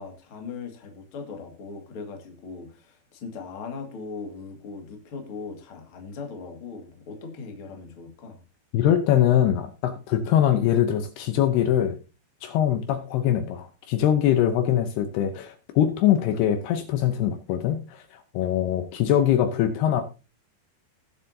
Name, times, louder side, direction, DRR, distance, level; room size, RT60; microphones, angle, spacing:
voice 1, 0.0-8.4, left 4 dB, 40° left, 3 dB, 2.2 m, -39 dB
voice 2, 8.7-12.0 12.4-20.0, left 10 dB, 75° left, 7 dB, 2.7 m, -23 dB
19.5 x 7.3 x 2.7 m, 0.30 s
omnidirectional pair, 5.0 m